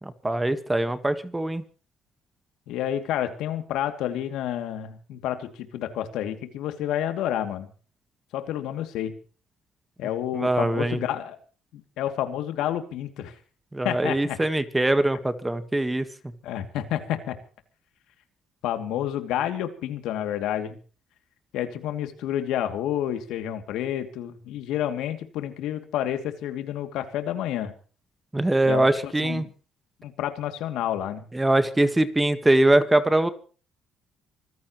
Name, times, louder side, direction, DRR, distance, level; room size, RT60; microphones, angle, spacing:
voice 1, 0.0-1.6 10.3-11.0 13.7-16.1 28.3-29.4 31.3-33.3, right 1 dB, 10° right, 11 dB, 1.5 m, -22 dB
voice 2, 2.7-7.7 8.3-9.1 10.0-11.4 11.7-13.3 13.8-14.4 16.4-17.4 18.6-20.8 21.5-27.7 28.6-29.5 30.0-31.2, left 11 dB, 85° left, 7 dB, 2.7 m, -29 dB
25.5 x 15.5 x 3.2 m, 0.39 s
cardioid pair, 135°, 0 cm